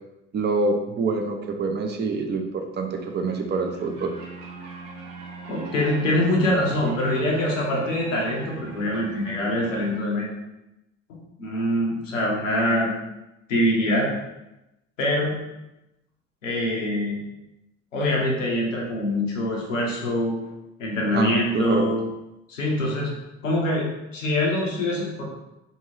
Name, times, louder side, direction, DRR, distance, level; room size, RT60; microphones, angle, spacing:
voice 1, 0.3-4.1 21.1-21.9, right 4 dB, 30° right, 4 dB, 0.4 m, -26 dB
sound 1, 2.9-10.0, right 4 dB, 75° right, 0.6 m, -40 dB
voice 2, 5.5-10.3 11.1-12.9 13.5-14.1 15.0-15.4 16.4-17.2 17.9-20.4 20.8-22.0 22.5-23.1 23.4-25.2, left 1 dB, 90° left, -2 dB, 0.6 m, -24 dB
2.6 x 2.6 x 3.1 m, 0.93 s
figure-of-eight pair, 50°, 37 cm